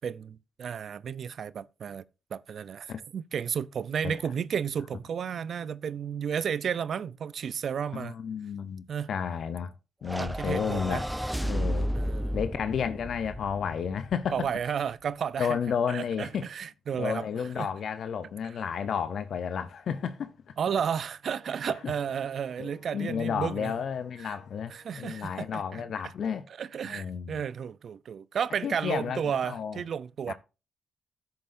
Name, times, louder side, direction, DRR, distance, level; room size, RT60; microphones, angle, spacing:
voice 1, 0.0-2.0 2.3-8.2 8.9-9.1 10.2-11.0 11.9-12.4 14.3-15.6 15.9-17.3 17.6-17.7 20.6-23.7 24.2-24.4 24.7-25.8 26.6-30.3, right 7 dB, 60° right, 0.4 m, -32 dB
voice 2, 7.9-9.7 10.0-11.0 11.4-11.9 12.3-14.5 15.4-16.5 16.9-20.3 22.6-26.5 26.8-27.4 28.6-29.8 30.3-30.4, left 7 dB, 65° left, 0.6 m, -32 dB
sound 1, 10.0-14.5, equal, 5° right, 0.8 m, -33 dB
Wind instrument woodwind instrument, 21.2-25.9, left 8 dB, 80° left, 3.5 m, -60 dB
13.5 x 6.7 x 2.6 m
hypercardioid pair, 50°, 0 cm